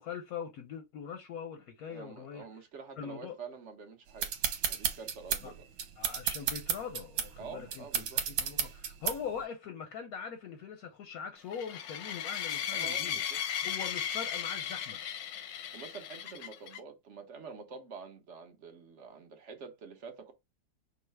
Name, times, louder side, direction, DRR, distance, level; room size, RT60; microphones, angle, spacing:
voice 1, 0.0-2.6 3.0-3.4 5.4-5.5 6.0-13.2 13.6-15.0, left 7 dB, 60° left, 1.0 m, -42 dB
voice 2, 1.9-4.3 4.6-5.6 7.4-8.2 12.7-13.4 15.7-20.3, right 5 dB, 50° right, 0.9 m, -47 dB
sound 1, 4.2-9.4, right 8 dB, 85° right, 1.7 m, -33 dB
sound 2, 11.5-16.8, left 9 dB, 85° left, 1.6 m, -36 dB
5.5 x 2.1 x 4.5 m
omnidirectional pair, 2.1 m